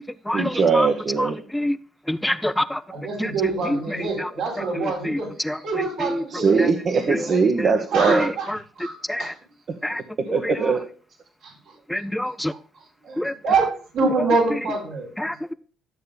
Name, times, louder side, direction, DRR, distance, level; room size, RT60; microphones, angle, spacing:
voice 1, 0.3-1.4 6.3-8.3 10.3-10.8, right 5 dB, 55° right, 1.1 m, -20 dB
voice 2, 2.1-2.8 9.1-9.2 11.9-12.5 13.2-13.3 15.2-15.5, left 1 dB, 5° left, 0.5 m, -25 dB
voice 3, 2.9-6.7 7.2-7.4 7.9-8.5 8.8-9.3 11.4-11.8 12.2-12.6 13.0-15.1, right 3 dB, 80° right, 3.7 m, -26 dB
13.0 x 6.8 x 2.2 m
supercardioid pair, 60°, 0 cm